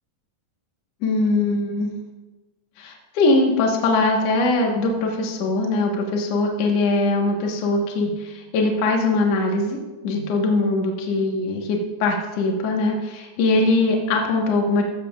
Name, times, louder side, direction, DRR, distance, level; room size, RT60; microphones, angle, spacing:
voice 1, 1.0-1.9 2.8-9.8 10.0-14.8, left 2 dB, 55° left, 1 dB, 2.1 m, -21 dB
14.5 x 12.5 x 2.4 m, 1.2 s
omnidirectional pair, 4.2 m